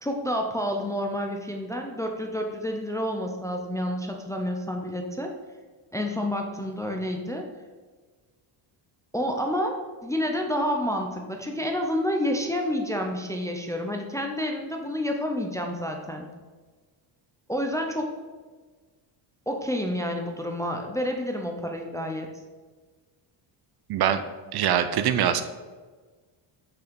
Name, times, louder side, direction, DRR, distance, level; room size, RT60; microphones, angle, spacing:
voice 1, 0.0-5.3 5.9-7.5 9.1-16.3 17.5-18.2 19.5-22.3, equal, 5° left, 2 dB, 0.4 m, -29 dB
voice 2, 23.9-24.2 24.5-25.4, right 9 dB, 50° right, 10 dB, 0.6 m, -23 dB
6.3 x 5.8 x 5.1 m, 1.4 s
cardioid pair, 150°, 48 cm